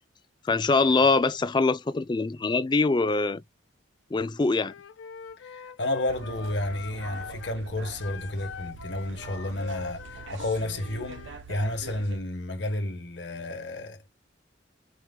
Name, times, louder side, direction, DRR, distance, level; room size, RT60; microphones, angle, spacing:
voice 1, 0.4-3.4 4.1-4.7, left 3 dB, 25° left, 0.3 m, -23 dB
Wind instrument woodwind instrument, 4.6-7.6 8.0-11.4, left 5 dB, 85° left, 0.5 m, -42 dB
voice 2, 5.4-14.1, left 1 dB, 65° left, 1.0 m, -31 dB
sound 1, 6.1-12.2, right 5 dB, 80° right, 0.6 m, -44 dB
4.6 x 2.1 x 3.5 m
head